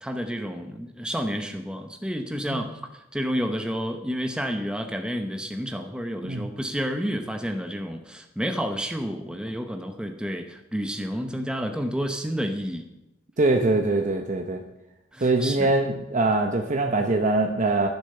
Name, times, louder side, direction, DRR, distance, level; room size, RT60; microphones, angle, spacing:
voice 1, 0.0-2.7 3.1-12.8 15.1-15.7, equal, 5° right, 5 dB, 0.9 m, -30 dB
voice 2, 13.4-14.6 15.2-17.9, right 2 dB, 40° right, 4 dB, 0.9 m, -23 dB
11.0 x 10.5 x 6.7 m, 0.90 s
head